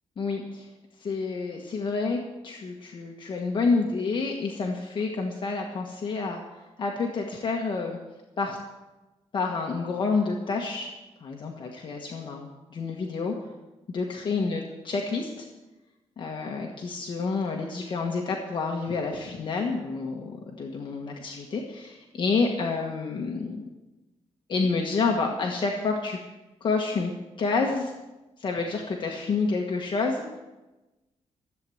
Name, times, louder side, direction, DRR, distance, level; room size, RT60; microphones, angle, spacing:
voice 1, 0.2-0.7 1.0-6.4 6.8-8.0 8.4-8.6 9.3-10.9 11.2-13.3 13.9-15.5 16.2-23.6 24.5-26.2 26.6-27.1 27.4-27.9 28.4-30.4, left 4 dB, 40° left, 0 dB, 1.4 m, -29 dB
14.5 x 8.5 x 7.8 m, 1.1 s
wide cardioid pair, 165°, 12 cm